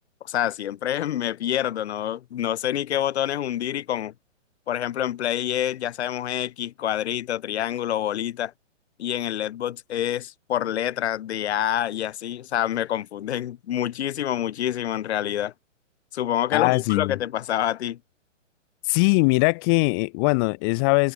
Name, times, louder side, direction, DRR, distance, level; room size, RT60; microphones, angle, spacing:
voice 1, 0.2-4.1 4.7-8.5 9.0-15.5 16.1-18.0, left 11 dB, 60° left, 1.0 m, -27 dB
voice 2, 16.5-17.2 18.8-21.1, left 33 dB, 20° left, 0.6 m, -21 dB
hypercardioid pair, 145°, 38 cm